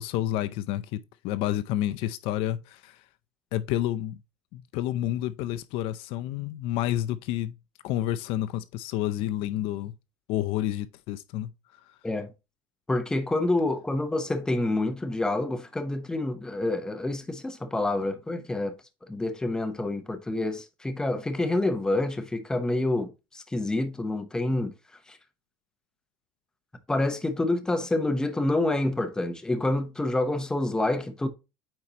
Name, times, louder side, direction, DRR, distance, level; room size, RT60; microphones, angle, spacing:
voice 1, 0.0-3.0 3.5-4.2 4.5-7.5 7.8-9.9 10.3-11.5, left 13 dB, 55° left, 0.4 m, -29 dB
voice 2, 12.9-18.8 19.1-24.7 25.1-25.2 26.9-31.3, left 2 dB, 5° left, 0.7 m, -27 dB
8.8 x 4.3 x 2.8 m
cardioid pair, 160°, 11 cm